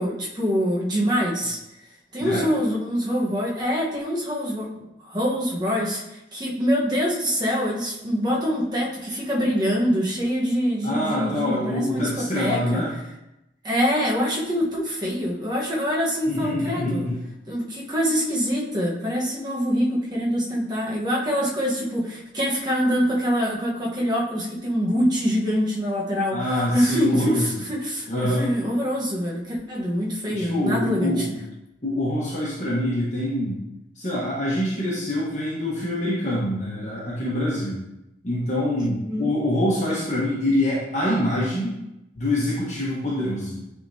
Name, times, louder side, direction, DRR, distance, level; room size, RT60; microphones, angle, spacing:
voice 1, 0.0-1.6 2.1-6.0 6.3-12.8 13.6-17.1 17.5-31.3 38.8-39.3, equal, 25° right, -4 dB, 1.2 m, -25 dB
voice 2, 10.8-12.9 16.3-17.2 26.3-27.4 28.1-28.4 30.3-31.4 31.8-33.6 33.9-37.8 38.2-41.8 42.1-43.7, left 1 dB, 40° left, -8 dB, 1.3 m, -25 dB
9.3 x 3.7 x 2.8 m, 0.90 s
head